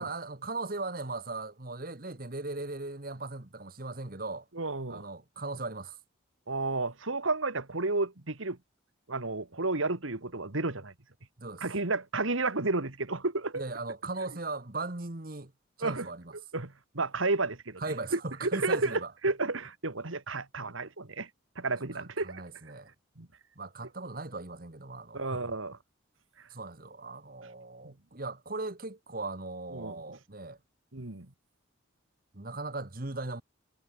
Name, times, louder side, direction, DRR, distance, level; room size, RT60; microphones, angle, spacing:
voice 1, 0.0-4.4 4.9-6.0 11.4-11.6 13.5-15.5 15.8-16.3 17.8-19.1 21.9-22.9 23.5-25.6 26.5-30.6 32.3-33.4, right 3 dB, 45° right, 1.5 m, -38 dB
voice 2, 4.6-5.1 6.5-8.6 9.1-10.9 11.6-13.6 15.8-16.1 16.5-17.8 18.1-21.3 21.6-22.4 23.2-23.3 25.1-25.8 27.8-27.9 29.7-30.2 30.9-31.3, right 3 dB, 75° right, 2.0 m, -32 dB
head